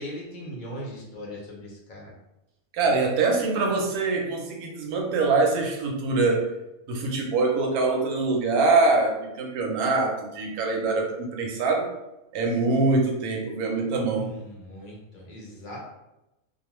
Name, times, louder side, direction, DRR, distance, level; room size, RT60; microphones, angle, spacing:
voice 1, 0.0-2.1 14.1-15.9, equal, 50° left, -4 dB, 0.6 m, -39 dB
voice 2, 2.7-6.5 6.9-11.9 12.3-14.3, right 3 dB, 85° right, 1 dB, 1.1 m, -24 dB
2.4 x 2.3 x 3.0 m, 0.94 s
omnidirectional pair, 1.5 m